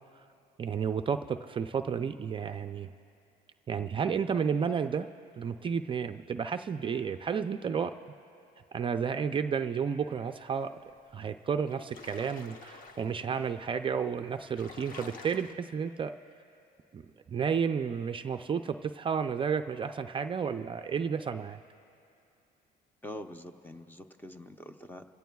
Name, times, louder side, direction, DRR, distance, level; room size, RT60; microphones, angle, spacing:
voice 1, 0.6-2.9 3.7-5.1 5.4-7.9 8.7-10.8 11.1-16.1 16.9-17.0 17.3-21.6, right 6 dB, 30° right, 8 dB, 0.4 m, -31 dB
sound 1, 11.1-11.2 11.5-13.3 14.0-14.1 14.3-15.5, left 4 dB, 55° left, 1.0 m, -49 dB
voice 2, 23.0-25.0, left 1 dB, 10° left, 7 dB, 0.7 m, -44 dB
28.0 x 16.5 x 2.3 m, 2.6 s
cardioid pair, 110°, 17 cm